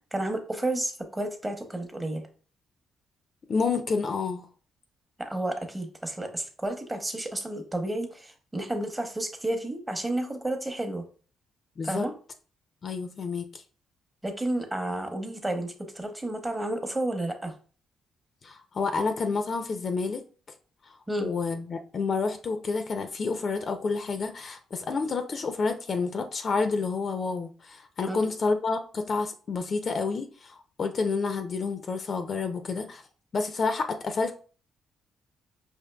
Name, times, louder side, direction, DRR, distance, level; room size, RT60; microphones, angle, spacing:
voice 1, 0.1-2.2 5.2-11.0 11.8-12.1 14.2-17.5 21.1-21.3 28.1-28.3, right 1 dB, 15° right, 5 dB, 0.8 m, -31 dB
voice 2, 3.5-4.5 11.8-12.1 12.8-13.6 18.4-20.2 20.8-20.9 21.2-33.0 33.3-34.3, left 4 dB, 45° left, 7 dB, 0.4 m, -29 dB
5.0 x 2.6 x 2.2 m, 0.40 s
cardioid pair, 90°, 0 cm